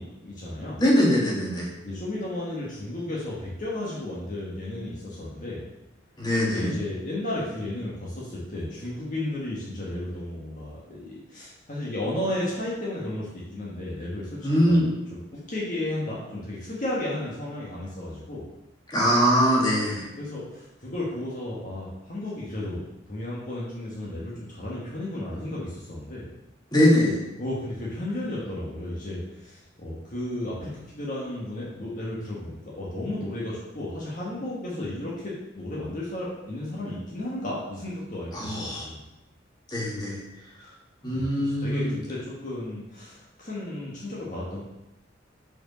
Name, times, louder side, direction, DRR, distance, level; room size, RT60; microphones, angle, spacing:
voice 1, 0.0-0.8 1.8-5.6 6.4-18.5 20.2-22.8 23.1-26.3 27.4-39.0 40.6-40.7 41.1-44.6, left 1 dB, 45° left, -6 dB, 1.5 m, -33 dB
voice 2, 0.8-1.7 6.2-6.7 14.4-14.9 18.9-20.1 26.7-27.2 38.3-38.9 39.7-40.2 41.0-41.9, equal, 25° left, -4 dB, 2.0 m, -22 dB
6.2 x 4.7 x 6.2 m, 0.96 s
head